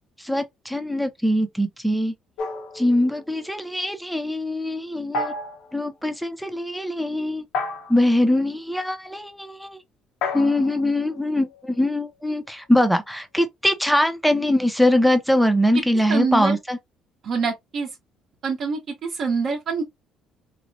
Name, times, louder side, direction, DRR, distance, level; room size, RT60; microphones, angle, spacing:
voice 1, 0.2-2.1 2.7-5.3 5.7-7.5 7.9-9.8 10.3-16.8, left 1 dB, ahead, 0.5 m, -22 dB
sound 1, 2.4-3.5 5.1-5.8 7.5-8.2 10.2-12.0, left 3 dB, 75° left, 0.7 m, -32 dB
voice 2, 16.1-16.6 17.2-17.9 18.4-19.8, right 5 dB, 45° right, 0.7 m, -25 dB
4.0 x 2.1 x 2.5 m
cardioid pair, 155°, 0 cm